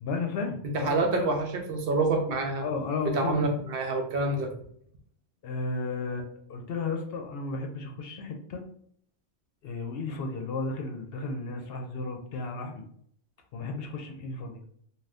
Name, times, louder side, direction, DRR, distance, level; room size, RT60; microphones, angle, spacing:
voice 1, 0.0-1.3 2.6-3.5 5.4-8.6 9.6-12.8 13.5-14.6, left 3 dB, 65° left, 4 dB, 0.7 m, -33 dB
voice 2, 0.7-2.6 3.1-4.5, right 2 dB, 65° right, 4 dB, 0.7 m, -27 dB
2.5 x 2.3 x 3.3 m, 0.64 s
omnidirectional pair, 1.1 m